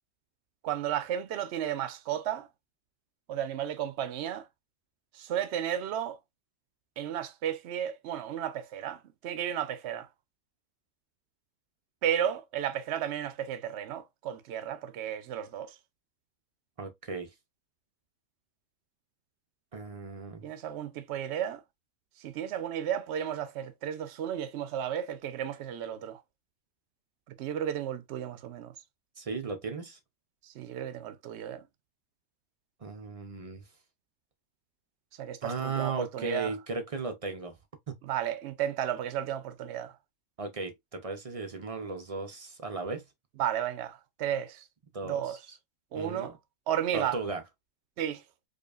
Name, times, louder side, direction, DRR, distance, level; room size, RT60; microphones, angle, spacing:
voice 1, 0.6-2.5 3.3-4.5 5.1-6.2 7.0-10.1 12.0-15.7 20.4-21.6 22.2-26.2 27.3-28.7 30.4-31.7 35.2-36.5 38.0-39.9 43.4-44.7 45.0-45.4 45.9-46.3 46.7-47.2 48.0-48.2, right 10 dB, 65° right, 0.8 m, -33 dB
voice 2, 16.8-17.3 19.7-20.5 29.2-30.0 32.8-33.6 35.4-37.6 37.9-38.0 40.4-43.0 44.9-45.4 45.9-46.4 46.9-47.4, right 4 dB, 45° right, 0.5 m, -36 dB
5.0 x 2.4 x 2.3 m
omnidirectional pair, 1.4 m